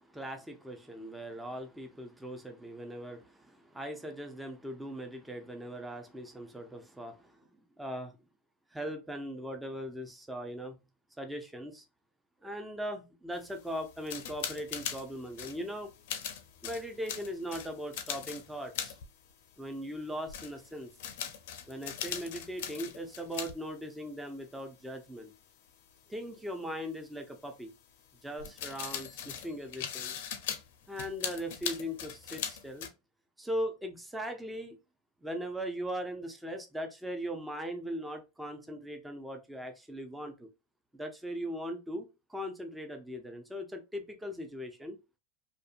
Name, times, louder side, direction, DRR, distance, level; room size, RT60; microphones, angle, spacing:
voice 1, 0.0-7.5 7.8-8.1 8.7-10.8 11.2-11.8 12.4-15.9 16.6-19.0 19.6-20.9 21.7-25.3 26.1-27.7 28.2-30.1 30.9-32.9 33.4-34.8 35.2-40.5 40.9-45.0, equal, 5° right, 0.5 m, -39 dB
sound 1, 13.3-20.0 20.3-23.5 23.8-23.9 25.7-25.8 28.4-32.9, left 9 dB, 65° left, 0.5 m, -40 dB
2.5 x 2.4 x 2.5 m
hypercardioid pair, 100°, 0 cm